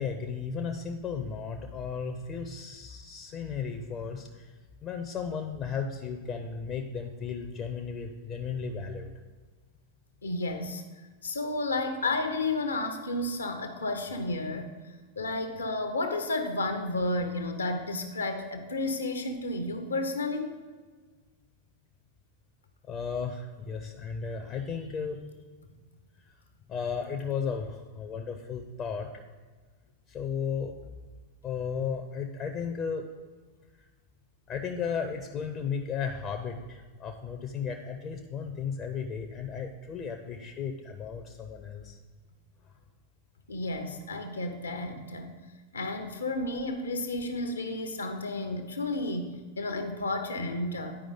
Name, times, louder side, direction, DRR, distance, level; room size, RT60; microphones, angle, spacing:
voice 1, 0.0-4.5 4.8-9.1 22.9-25.2 26.7-29.2 30.1-30.8 31.4-33.1 34.5-42.0, left 6 dB, 30° left, 4 dB, 0.6 m, -34 dB
voice 2, 10.2-10.8 11.2-14.7 15.2-20.5 43.5-45.3 45.7-51.0, left 2 dB, 75° left, 7 dB, 0.8 m, -32 dB
9.8 x 5.0 x 3.7 m, 1.4 s
figure-of-eight pair, 90°, 0 cm